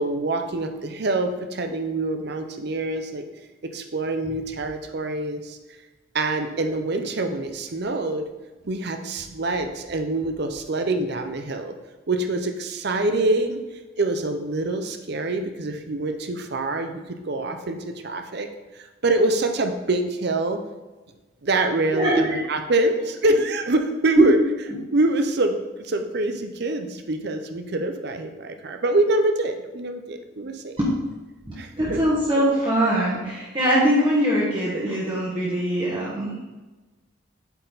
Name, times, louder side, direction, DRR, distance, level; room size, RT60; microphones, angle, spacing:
voice 1, 0.0-3.2 3.6-5.6 6.1-8.3 8.6-11.7 12.1-13.6 14.0-18.5 18.7-20.6 21.4-24.4 24.9-30.8 31.6-32.0, right 2 dB, 50° right, 6 dB, 0.6 m, -25 dB
voice 2, 21.9-22.4 24.2-24.3 30.8-30.9 31.5-36.3, equal, 25° right, -8 dB, 1.4 m, -22 dB
8.0 x 4.5 x 4.0 m, 1.2 s
head